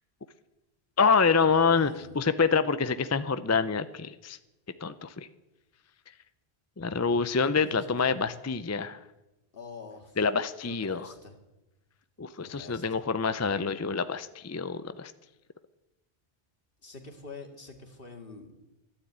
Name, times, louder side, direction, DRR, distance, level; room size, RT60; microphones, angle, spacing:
voice 1, 1.0-4.4 4.8-5.3 6.8-9.0 10.2-11.1 12.2-15.1, left 5 dB, 25° left, 13 dB, 0.4 m, -26 dB
voice 2, 1.5-2.2 7.4-8.3 9.5-10.2 10.6-11.4 12.4-13.0 16.8-18.5, left 3 dB, 60° left, 4 dB, 2.4 m, -46 dB
13.0 x 12.0 x 8.8 m, 1.0 s
omnidirectional pair, 1.1 m